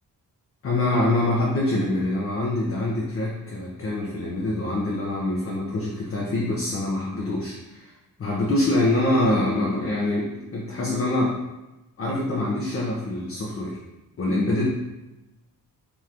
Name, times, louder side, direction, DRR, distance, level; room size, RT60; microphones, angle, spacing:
voice 1, 0.6-7.9 8.2-11.4 12.0-13.8 14.2-14.7, left 1 dB, 40° left, -3 dB, 0.5 m, -25 dB
2.9 x 2.4 x 3.3 m, 1.0 s
cardioid pair, 100°, 36 cm